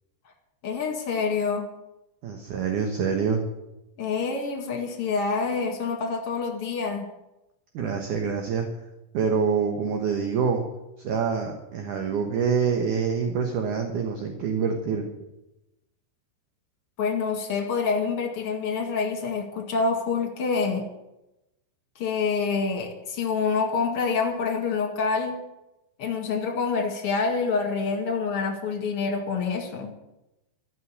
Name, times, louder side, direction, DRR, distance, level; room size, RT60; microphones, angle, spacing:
voice 1, 0.6-1.7 4.0-7.1 17.0-20.9 22.0-25.4 26.0-29.9, left 5 dB, 45° left, 2 dB, 2.1 m, -27 dB
voice 2, 2.2-3.4 7.7-8.7 9.1-10.6 11.0-15.1, right 6 dB, 65° right, 3 dB, 2.2 m, -26 dB
14.0 x 6.7 x 9.9 m, 0.93 s
omnidirectional pair, 5.1 m